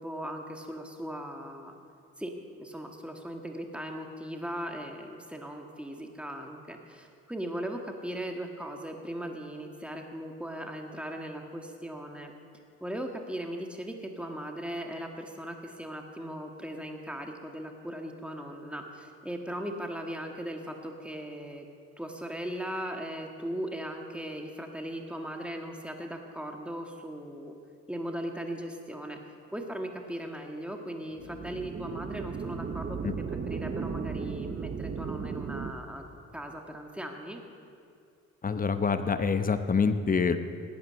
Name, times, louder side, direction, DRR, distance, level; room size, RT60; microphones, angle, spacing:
voice 1, 0.0-1.7 2.2-2.3 2.6-12.3 12.8-21.7 22.0-27.6 27.9-29.2 29.5-36.1 36.3-37.4, equal, 5° right, 3 dB, 1.8 m, -38 dB
sound 1, 31.1-35.7, right 5 dB, 30° right, 0.8 m, -35 dB
voice 2, 38.4-40.4, left 5 dB, 30° left, 10 dB, 0.9 m, -26 dB
17.0 x 9.3 x 6.5 m, 2.5 s
cardioid pair, 90°, 30 cm